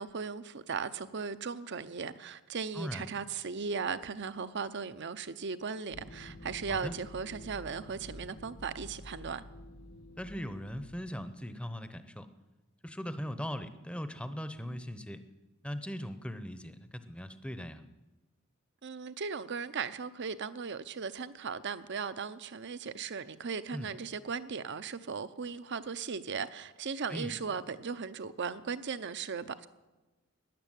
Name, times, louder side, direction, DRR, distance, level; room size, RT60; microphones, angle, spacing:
voice 1, 0.0-9.4 18.8-29.7, right 5 dB, 55° right, 0.7 m, -37 dB
sound 1, 5.9-11.1, left 1 dB, 80° left, 1.9 m, -49 dB
voice 2, 10.2-12.3 12.8-15.2 15.6-17.8 23.7-23.9 27.1-27.4, equal, 5° left, 0.8 m, -39 dB
13.5 x 10.0 x 9.1 m
head